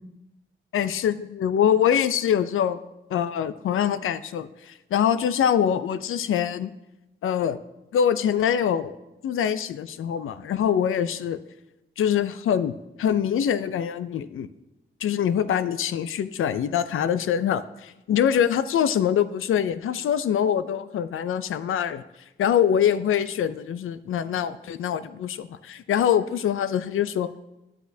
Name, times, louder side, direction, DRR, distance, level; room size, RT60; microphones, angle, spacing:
voice 1, 0.7-2.8 3.1-6.7 7.2-7.6 7.9-8.9 9.2-11.4 12.0-14.5 15.0-22.0 22.4-27.3, left 9 dB, 90° left, 14 dB, 0.4 m, -24 dB
10.5 x 8.2 x 2.7 m, 0.95 s
wide cardioid pair, 130°, 20 cm